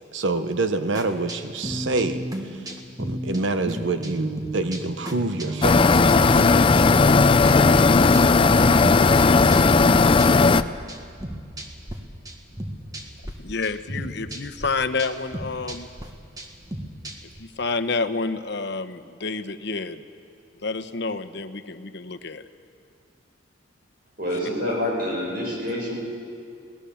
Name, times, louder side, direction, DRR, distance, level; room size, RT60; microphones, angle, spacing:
voice 1, 0.1-2.2 3.0-6.4, right 3 dB, 80° right, 9 dB, 1.0 m, -27 dB
sound 1, 0.9-12.0 12.2-13.3 13.6-17.4, right 1 dB, 20° right, 1.6 m, -33 dB
sound 2, 5.6-10.6, left 4 dB, 30° left, 0.5 m, -16 dB
voice 2, 13.4-15.9 17.4-20.0 20.6-22.5, left 4 dB, 65° left, 9 dB, 1.0 m, -29 dB
voice 3, 24.2-26.0, left 1 dB, 55° right, -2 dB, 7.3 m, -27 dB
23.5 x 18.0 x 7.2 m, 2.4 s
head